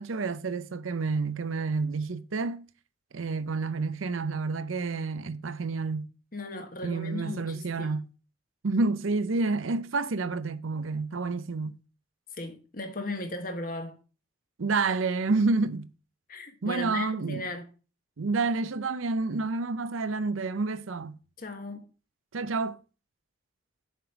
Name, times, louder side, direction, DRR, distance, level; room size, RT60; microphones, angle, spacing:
voice 1, 0.0-2.7 3.1-6.1 6.8-8.1 8.6-11.8 14.6-15.9 16.6-17.5 18.2-21.2 22.3-22.8, right 3 dB, 85° right, 0.6 m, -29 dB
voice 2, 6.3-7.9 12.3-14.0 16.3-17.7 21.4-21.9, left 2 dB, 45° left, 1.3 m, -37 dB
7.5 x 5.1 x 5.8 m
head